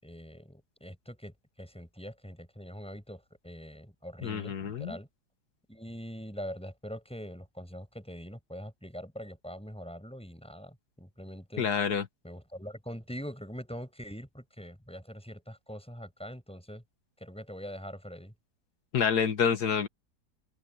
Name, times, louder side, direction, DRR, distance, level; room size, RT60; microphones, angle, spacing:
voice 1, 0.0-5.1 5.7-11.7 12.2-16.8 17.2-18.3, equal, 5° left, 6.1 m, -43 dB
voice 2, 4.2-5.0 11.6-12.0 18.9-19.9, left 7 dB, 65° left, 2.0 m, -28 dB
omnidirectional pair, 1.8 m